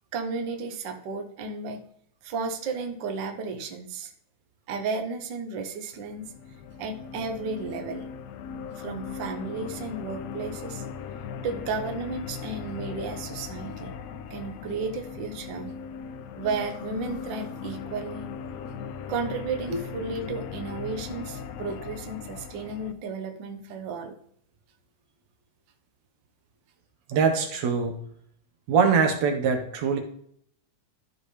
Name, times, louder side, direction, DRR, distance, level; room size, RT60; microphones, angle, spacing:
voice 1, 0.1-1.8 2.2-4.1 4.7-6.3 6.8-8.1 8.7-10.8 11.4-13.9 14.3-15.7 16.4-18.3 19.1-24.2, right 4 dB, 85° right, 4 dB, 1.0 m, -33 dB
sound 1, 5.9-22.9, left 6 dB, 80° left, 1.6 m, -39 dB
voice 2, 27.1-28.0 28.7-30.0, right 5 dB, 65° right, 4 dB, 2.3 m, -23 dB
13.5 x 4.9 x 3.3 m, 0.67 s
omnidirectional pair, 3.6 m